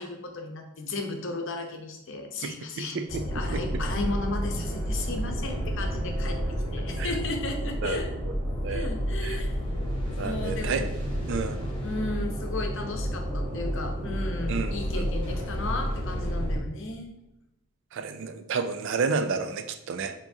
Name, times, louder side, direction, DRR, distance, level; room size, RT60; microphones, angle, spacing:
voice 1, 0.0-8.1 8.7-9.6 10.2-10.9 11.8-17.2, left 3 dB, 60° left, 4 dB, 0.7 m, -35 dB
voice 2, 2.4-3.2 3.5-3.6 7.0-7.1 7.8-8.0 8.6-8.9 9.2-9.4 10.1-10.9 11.3-11.6 14.5-15.1 17.9-20.1, right 5 dB, 55° right, 7 dB, 0.3 m, -31 dB
sound 1, 3.1-16.6, equal, 20° left, 1.1 m, -30 dB
6.9 x 2.9 x 2.7 m, 0.88 s
head